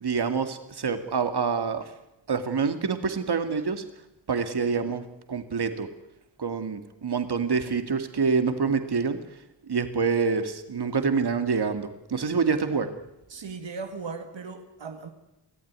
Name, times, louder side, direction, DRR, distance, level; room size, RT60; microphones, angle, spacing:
voice 1, 0.0-1.8 2.3-3.8 4.3-5.0 5.3-5.9 6.4-9.2 9.7-12.9, right 5 dB, 60° right, 2.2 m, -26 dB
voice 2, 13.3-15.1, right 4 dB, 80° right, 2.1 m, -37 dB
24.0 x 15.0 x 9.6 m
wide cardioid pair, 75°, 44 cm